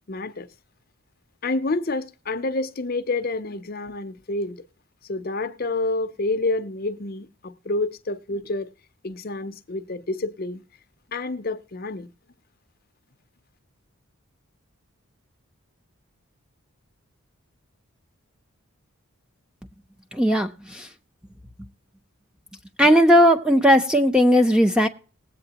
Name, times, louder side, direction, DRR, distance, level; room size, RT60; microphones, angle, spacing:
voice 1, 0.1-0.5 1.4-4.7 5.1-8.7 9.0-10.6 11.1-12.1, left 2 dB, 40° left, 0.6 m, -28 dB
voice 2, 20.1-20.9 22.8-24.9, equal, 5° right, 0.7 m, -17 dB
20.0 x 8.3 x 2.9 m
head